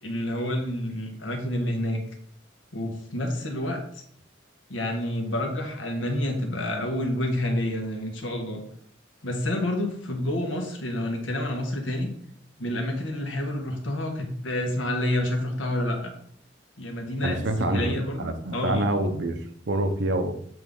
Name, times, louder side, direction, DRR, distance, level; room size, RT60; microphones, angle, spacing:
voice 1, 0.0-2.0 2.7-3.8 4.7-8.6 9.2-12.1 12.6-16.1 16.8-18.9, left 1 dB, 85° left, 3 dB, 1.4 m, -28 dB
voice 2, 17.2-20.3, right 1 dB, 65° right, 7 dB, 0.8 m, -27 dB
7.5 x 3.9 x 3.8 m, 0.64 s
head